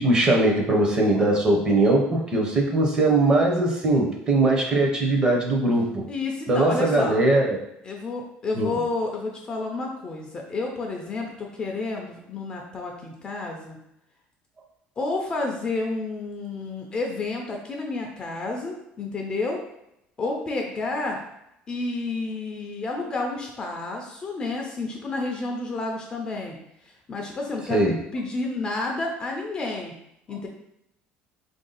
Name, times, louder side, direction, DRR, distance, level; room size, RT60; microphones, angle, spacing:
voice 1, 0.0-5.9 6.5-7.6 8.6-8.7 27.7-27.9, right 2 dB, 20° right, 0 dB, 0.7 m, -20 dB
voice 2, 6.1-7.2 7.8-13.8 15.0-19.6 20.2-21.2 21.7-26.6 26.8-27.8 28.1-29.9 30.3-30.5, left 3 dB, 20° left, 1 dB, 0.5 m, -30 dB
3.5 x 2.6 x 3.9 m, 0.82 s
cardioid pair, 165°, 4 cm